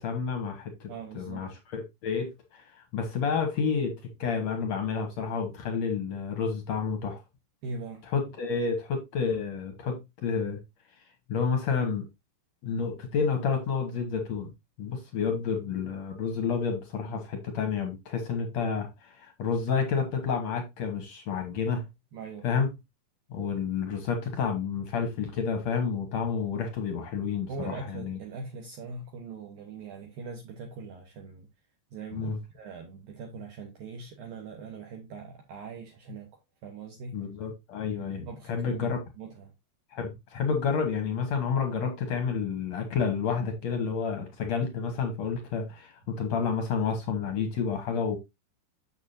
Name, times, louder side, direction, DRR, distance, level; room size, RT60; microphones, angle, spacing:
voice 1, 0.0-7.2 8.1-10.6 11.3-12.0 12.6-14.5 14.8-21.8 22.4-22.7 23.3-27.7 28.1-28.2 32.1-32.4 37.1-39.0 39.9-48.2, left 5 dB, 65° left, 1.7 m, -30 dB
voice 2, 0.9-1.5 7.6-8.0 15.2-15.4 22.1-22.6 27.5-31.5 31.9-36.3 36.6-37.2 38.0-38.9 39.2-39.5, right 4 dB, 65° right, 2.6 m, -41 dB
8.3 x 7.0 x 2.7 m
omnidirectional pair, 4.9 m